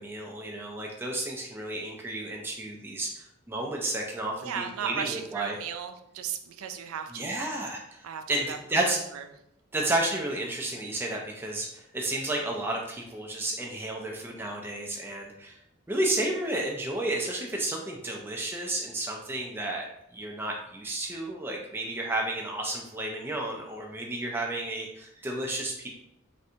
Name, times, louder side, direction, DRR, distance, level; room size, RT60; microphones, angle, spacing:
voice 1, 0.0-5.6 7.1-8.0 8.3-8.4 8.7-9.0 9.7-15.6 15.9-19.9 20.1-25.9, right 1 dB, 10° right, -1 dB, 0.3 m, -32 dB
voice 2, 4.4-7.4 8.0-9.2 9.8-10.0, right 7 dB, 80° right, 7 dB, 0.4 m, -36 dB
3.2 x 2.6 x 2.7 m, 0.79 s
head